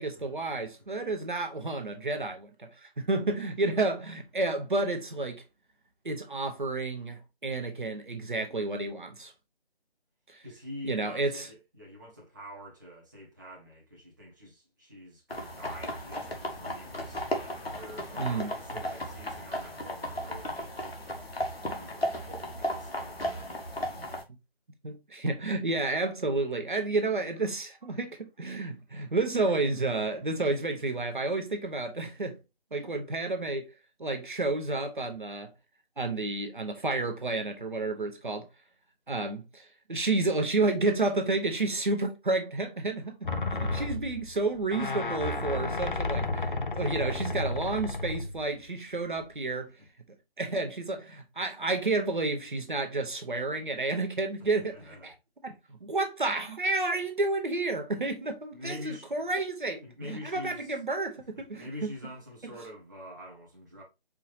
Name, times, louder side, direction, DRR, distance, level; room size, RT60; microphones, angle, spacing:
voice 1, 0.0-5.4 6.0-9.3 10.3-10.4 10.9-11.5 18.2-18.5 21.7-21.8 24.8-32.4 32.7-33.7 34.0-35.5 36.0-38.5 39.1-49.7 50.4-55.1 55.4-61.7, right 3 dB, 50° right, 0.9 m, -31 dB
voice 2, 10.4-17.3 17.6-21.3 21.7-23.5 49.8-49.9 54.6-55.1 58.5-59.2 59.8-60.8 61.3-63.8, left 1 dB, 20° right, 0.8 m, -46 dB
sound 1, 15.3-24.2, equal, 70° left, 1.2 m, -35 dB
sound 2, 43.2-48.5 49.2-49.3, left 2 dB, 55° left, 0.6 m, -32 dB
4.6 x 2.7 x 3.0 m
figure-of-eight pair, 160°, 31 cm